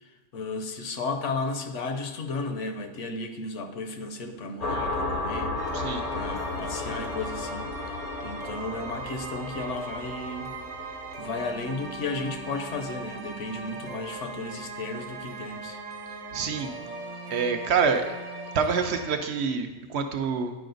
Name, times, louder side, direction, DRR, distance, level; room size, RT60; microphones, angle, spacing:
voice 1, 0.0-10.5 11.2-15.8, left 3 dB, 75° left, 7 dB, 1.0 m, -34 dB
sound 1, 4.6-13.9, left 2 dB, 45° left, 0.6 m, -35 dB
sound 2, 5.6-19.1, right 3 dB, 85° right, 1.1 m, -39 dB
voice 2, 16.3-16.7 17.3-18.0 18.5-20.5, right 6 dB, 65° right, 6 dB, 0.8 m, -26 dB
9.8 x 4.9 x 3.9 m, 1.2 s
omnidirectional pair, 1.3 m